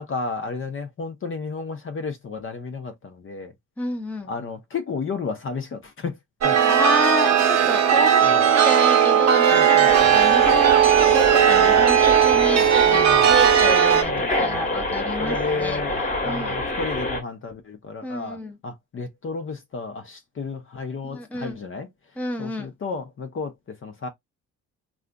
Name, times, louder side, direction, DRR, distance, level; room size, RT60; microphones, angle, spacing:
voice 1, 0.0-3.5 4.3-6.2 6.4-6.6 8.2-8.4 9.5-9.9 10.3-10.4 12.9-13.3 14.1-14.8 15.2-18.4 18.6-21.9 22.4-24.1, left 4 dB, 45° left, 0.7 m, -32 dB
voice 2, 3.8-4.3 6.5-15.8 16.2-16.6 18.0-18.6 21.0-21.6 22.2-22.7, left 1 dB, 5° left, 0.6 m, -30 dB
Chime, 6.4-14.0, right 9 dB, 60° right, 0.8 m, -17 dB
sound 1, 9.9-17.2, left 1 dB, 25° left, 1.2 m, -27 dB
3.8 x 2.4 x 2.2 m
cardioid pair, 90°, 30 cm